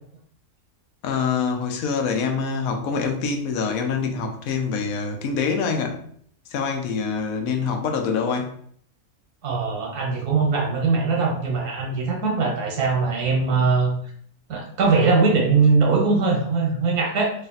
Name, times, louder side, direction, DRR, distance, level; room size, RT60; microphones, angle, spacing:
voice 1, 1.0-6.0 6.5-8.5, left 5 dB, 70° left, 4 dB, 1.0 m, -25 dB
voice 2, 9.4-13.9 14.5-17.3, right 4 dB, 85° right, 0 dB, 1.5 m, -21 dB
3.2 x 2.6 x 3.9 m, 0.63 s
omnidirectional pair, 1.6 m